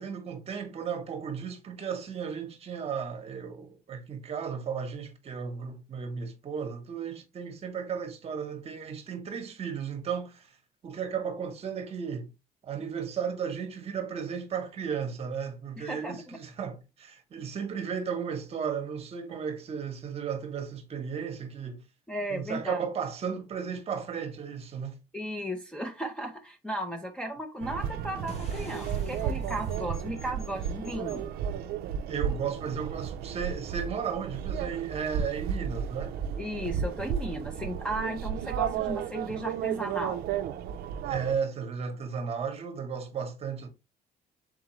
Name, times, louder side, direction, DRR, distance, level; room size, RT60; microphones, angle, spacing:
voice 1, 0.0-10.6 10.8-12.3 12.6-21.8 22.3-25.0 32.1-36.2 41.0-43.7, right 6 dB, 40° right, 0.9 m, -34 dB
voice 2, 15.8-16.1 22.1-22.8 25.1-31.3 36.4-40.2, right 1 dB, 5° left, 0.5 m, -35 dB
sound 1, 27.6-41.4, right 8 dB, 75° right, 0.4 m, -33 dB
sound 2, 28.3-33.2, left 2 dB, 40° left, 0.8 m, -48 dB
4.0 x 3.6 x 3.0 m
cardioid pair, 135°, 16 cm